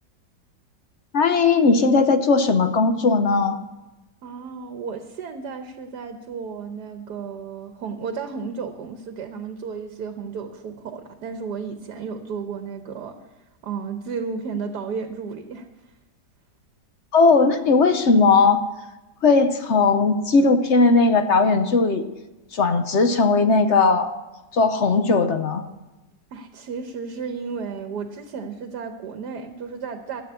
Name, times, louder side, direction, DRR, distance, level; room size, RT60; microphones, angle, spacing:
voice 1, 1.1-3.6 17.1-18.6 19.2-22.0 22.5-24.1 24.5-25.6, left 4 dB, 55° left, 8 dB, 0.9 m, -18 dB
voice 2, 4.2-13.2 13.6-15.7 26.3-30.2, right 5 dB, 70° right, 7 dB, 1.4 m, -33 dB
13.0 x 8.4 x 8.1 m, 1.1 s
omnidirectional pair, 1.9 m